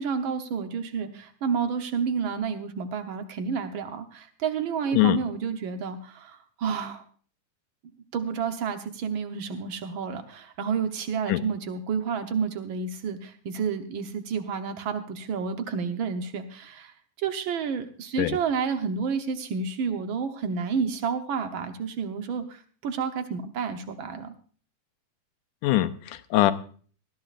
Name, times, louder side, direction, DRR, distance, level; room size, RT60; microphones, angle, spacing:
voice 1, 0.0-7.0 8.1-16.9 17.2-24.3, right 6 dB, 75° right, 7 dB, 1.1 m, -30 dB
voice 2, 25.6-26.5, left 15 dB, 90° left, 11 dB, 2.3 m, -22 dB
19.0 x 14.5 x 2.5 m, 0.43 s
omnidirectional pair, 3.5 m